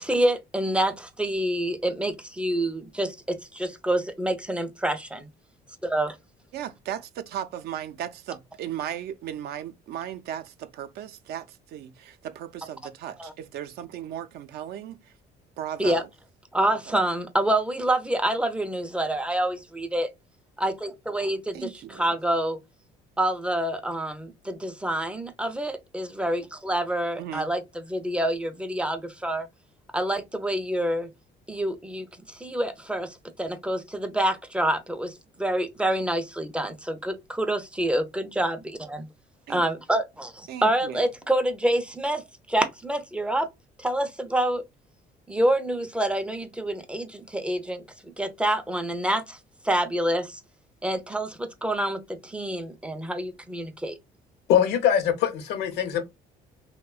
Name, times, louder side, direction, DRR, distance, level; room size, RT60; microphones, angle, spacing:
voice 1, 0.0-5.3 5.8-6.2 13.2-13.3 15.8-16.0 16.5-20.1 20.6-22.6 23.2-29.5 29.9-31.1 31.5-39.1 39.5-43.5 43.8-44.6 45.3-49.4 49.6-50.4 50.8-54.0, right 1 dB, 5° right, 0.4 m, -27 dB
voice 2, 6.5-15.1 15.6-16.1 16.6-17.0 21.5-22.2 27.2-27.5 39.5-39.6 40.5-41.1, right 10 dB, 70° right, 0.4 m, -36 dB
voice 3, 54.5-56.0, left 9 dB, 75° left, 0.6 m, -22 dB
2.8 x 2.1 x 2.3 m
cardioid pair, 110°, 17 cm